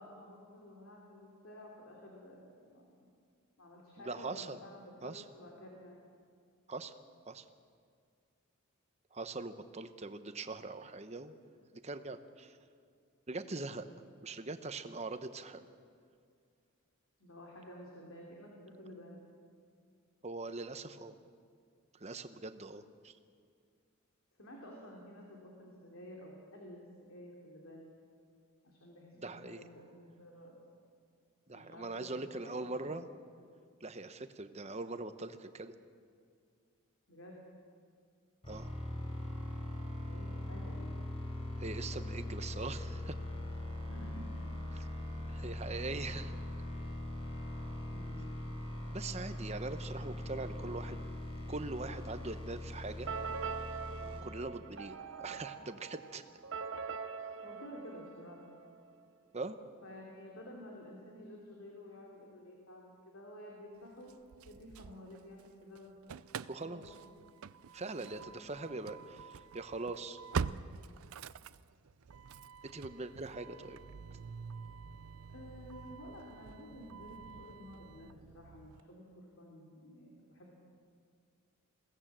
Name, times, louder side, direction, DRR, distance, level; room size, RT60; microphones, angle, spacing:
voice 1, 0.0-3.1 3.6-6.0 13.4-13.7 17.2-19.2 24.4-27.9 28.6-30.5 31.5-32.6 37.1-37.4 39.7-41.0 43.9-45.1 47.9-48.4 54.0-54.3 57.4-58.4 59.8-64.1 64.5-66.1 66.6-67.1 75.3-80.5, left 1 dB, 75° left, -2 dB, 3.1 m, -52 dB
voice 2, 4.0-4.6 5.0-5.2 6.7-6.9 7.3-7.4 9.1-11.4 11.8-12.6 13.3-13.9 14.2-15.6 20.2-21.2 22.0-23.1 29.2-29.6 31.5-33.1 33.8-35.7 38.5-38.7 41.6-43.2 45.3-46.4 48.9-51.0 51.5-53.1 54.2-56.2 59.3-59.6 66.5-66.9 67.7-70.2 72.7-73.8, right 3 dB, 30° right, 10 dB, 0.9 m, -42 dB
sound 1, 38.4-54.2, left 1 dB, 25° left, 4.1 m, -41 dB
sound 2, 53.1-58.8, right 5 dB, 60° right, 0.8 m, -43 dB
Engine starting / Slam, 64.1-65.5 65.8-78.8, right 6 dB, 85° right, 0.5 m, -45 dB
21.5 x 17.0 x 7.5 m, 2.2 s
head